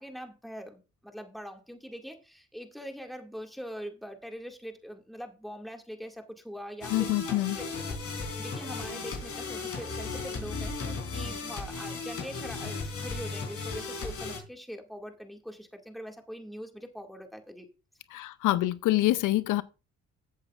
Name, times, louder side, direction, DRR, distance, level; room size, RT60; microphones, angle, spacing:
voice 1, 0.0-10.8 11.1-17.7, equal, ahead, 2.0 m, -43 dB
sound 1, 6.8-14.4, left 4 dB, 50° left, 4.1 m, -36 dB
voice 2, 6.9-7.6 18.1-19.6, left 16 dB, 85° left, 0.6 m, -26 dB
15.5 x 8.0 x 2.4 m
cardioid pair, 90°, 30 cm